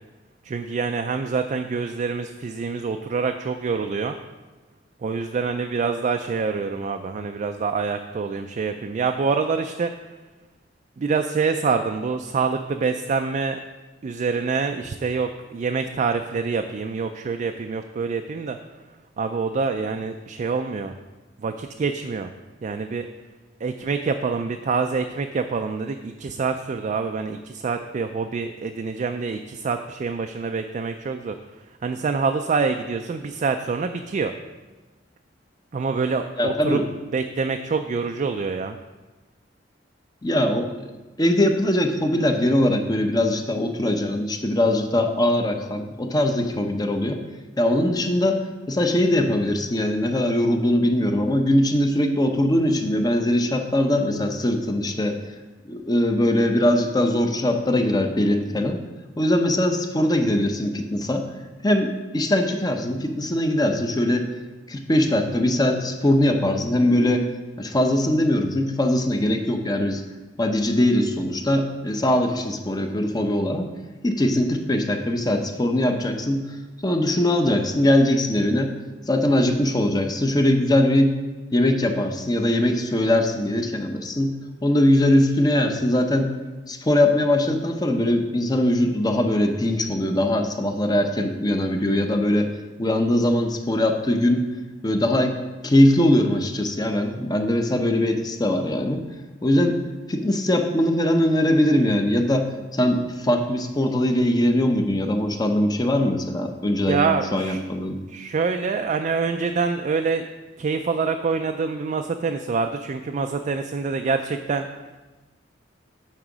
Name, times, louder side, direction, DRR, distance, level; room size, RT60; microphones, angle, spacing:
voice 1, 0.4-4.2 5.0-9.9 11.0-13.6 14.0-18.6 19.2-20.9 21.4-22.3 22.6-23.0 23.6-31.4 31.8-34.3 35.7-36.8 37.1-38.8 106.9-107.6 108.1-110.2 110.6-114.7, right 5 dB, 40° right, 6 dB, 0.3 m, -26 dB
voice 2, 36.4-36.8 40.2-40.7 41.2-47.2 47.6-48.4 48.7-55.2 55.7-58.8 59.2-61.2 61.6-64.3 64.7-67.3 67.6-70.0 70.4-73.7 74.0-76.4 76.8-78.7 79.1-81.1 81.5-84.3 84.6-86.3 86.7-92.5 92.8-94.5 94.8-95.4 95.6-99.0 99.4-99.8 100.1-108.0, left 1 dB, 20° left, 5 dB, 0.6 m, -21 dB
8.9 x 3.7 x 6.0 m, 1.2 s
head